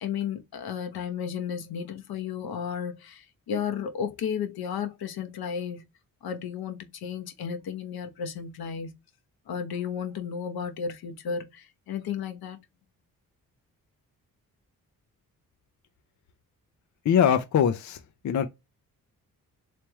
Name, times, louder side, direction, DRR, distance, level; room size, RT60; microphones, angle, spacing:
voice 1, 0.0-5.8 6.2-8.9 9.5-12.6, left 7 dB, 80° left, 0.9 m, -33 dB
voice 2, 17.0-18.5, left 8 dB, 50° left, 0.6 m, -23 dB
3.4 x 3.1 x 3.0 m
cardioid pair, 65°, 36 cm